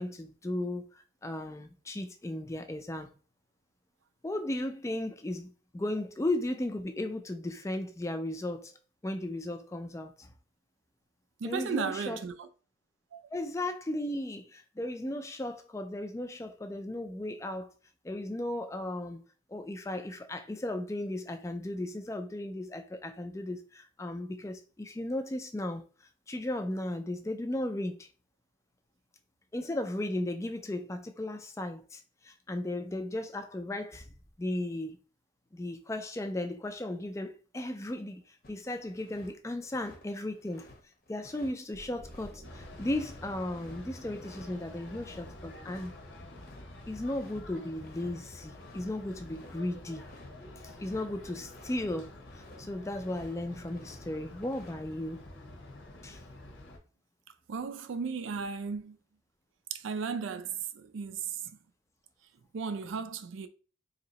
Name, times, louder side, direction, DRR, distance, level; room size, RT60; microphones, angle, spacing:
voice 1, 0.0-3.1 4.2-8.7 9.0-10.3 11.4-12.2 13.3-17.7 18.0-28.1 29.5-34.1 34.4-35.0 35.5-40.7 41.1-46.0 46.9-50.0 50.6-55.2 56.0-56.2, left 1 dB, 15° left, 0.3 m, -36 dB
voice 2, 11.4-12.5 13.1-13.3 57.5-59.0 59.7-61.4 62.5-63.5, right 5 dB, 85° right, 0.4 m, -35 dB
sound 1, 38.4-39.3 39.6-43.8 44.2-44.5 44.7-46.7 47.1-47.4 47.7-48.2 48.4-51.8 52.1-52.6 52.9-54.0 54.3-54.8, left 2 dB, 50° left, 0.7 m, -54 dB
sound 2, 41.7-45.3, right 1 dB, 15° right, 0.8 m, -54 dB
sound 3, 42.4-56.8, left 1 dB, 75° left, 1.0 m, -48 dB
2.9 x 2.7 x 4.0 m
head